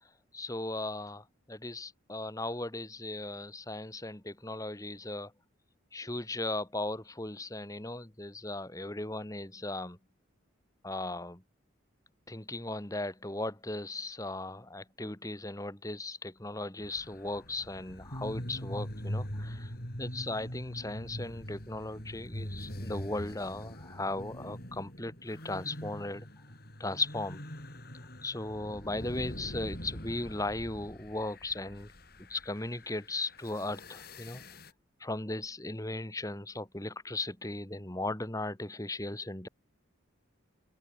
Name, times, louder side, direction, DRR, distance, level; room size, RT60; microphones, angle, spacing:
voice 1, 0.3-5.3 5.9-10.0 10.8-11.4 12.3-19.7 20.0-26.3 26.8-27.4 28.2-31.9 32.2-34.4 35.0-39.5, left 2 dB, 15° left, 1.5 m, -37 dB
sound 1, 16.8-34.7, equal, 50° left, 7.3 m, -43 dB
open air
head